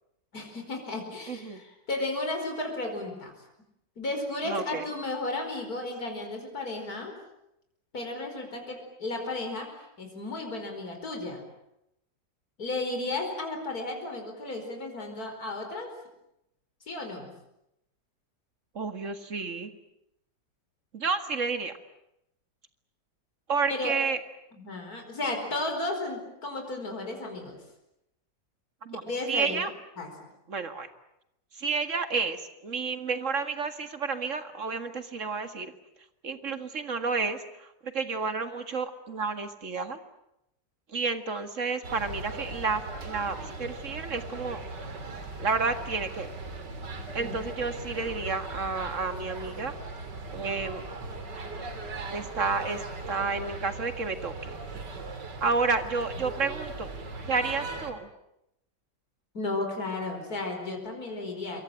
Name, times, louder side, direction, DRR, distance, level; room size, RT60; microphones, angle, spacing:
voice 1, 0.3-3.3 4.0-7.1 7.9-11.4 12.6-15.9 16.9-17.3 23.7-24.0 24.6-27.6 29.1-29.7 30.0-30.1 47.2-47.3 47.7-47.8 59.3-61.6, left 2 dB, 55° left, 3 dB, 5.5 m, -34 dB
voice 2, 1.3-1.6 4.4-4.9 18.7-19.7 20.9-21.8 23.5-24.2 28.8-29.0 29.3-29.7 30.5-30.9 31.5-35.7 36.2-40.0 40.9-44.7 45.4-46.3 47.1-49.8 50.3-50.8 52.0-54.6 55.4-56.9 57.3-58.1, right 4 dB, 45° right, 8 dB, 2.2 m, -31 dB
sound 1, 41.8-57.9, right 3 dB, 80° right, 3.4 m, -39 dB
27.0 x 23.0 x 9.0 m, 0.83 s
omnidirectional pair, 1.8 m